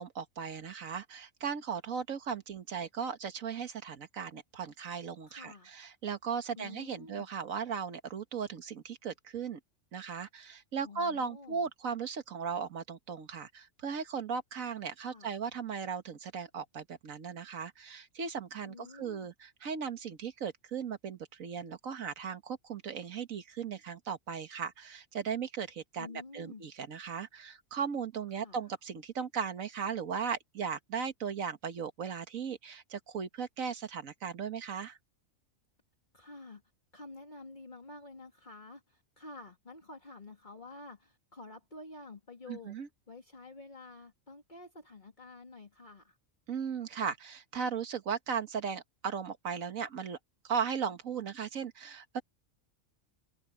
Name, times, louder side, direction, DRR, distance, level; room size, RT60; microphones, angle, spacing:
voice 1, 0.0-9.6 9.9-26.1 26.3-35.0 42.5-42.9 46.5-50.2 50.4-52.2, right 6 dB, 85° right, 1.8 m, -37 dB
voice 2, 5.3-5.8 6.5-7.3 10.8-11.7 15.0-15.4 18.6-19.3 26.0-26.6 28.3-28.6 36.1-36.6 36.9-42.8 43.1-46.2, left 3 dB, 35° left, 2.9 m, -49 dB
omnidirectional pair, 1.4 m